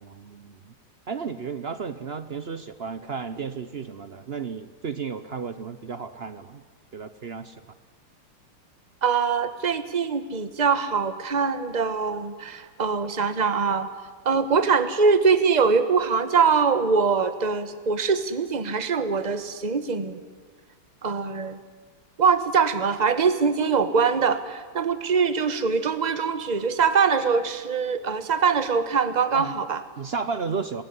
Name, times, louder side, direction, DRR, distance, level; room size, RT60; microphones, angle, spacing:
voice 1, 0.0-0.7 1.1-6.6 6.9-7.6 29.3-29.6 30.0-30.8, right 5 dB, 65° right, 12 dB, 0.6 m, -33 dB
voice 2, 9.0-13.9 14.2-20.2 21.0-21.6 22.2-29.8, right 5 dB, 25° right, 11 dB, 1.2 m, -23 dB
26.5 x 19.5 x 9.8 m, 1.5 s
omnidirectional pair, 2.4 m